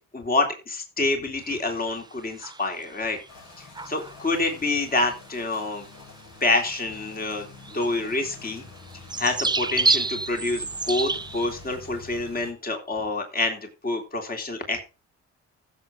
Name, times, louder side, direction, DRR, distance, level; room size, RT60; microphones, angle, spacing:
voice 1, 0.1-3.2 3.6-5.8 6.4-7.5 7.7-8.6 9.2-14.8, left 2 dB, 30° left, 4 dB, 3.4 m, -27 dB
sound 1, 1.5-2.0 2.4-3.0 3.2-3.3 3.7-4.2 5.2-5.4 5.7-5.9 6.6-6.7 7.0-7.1 7.6-11.5, right 3 dB, 15° right, 0.6 m, -28 dB
sound 2, 3.3-12.5, left 4 dB, 60° left, 4.8 m, -46 dB
15.0 x 7.2 x 3.5 m, 0.31 s
cardioid pair, 90°, 30 cm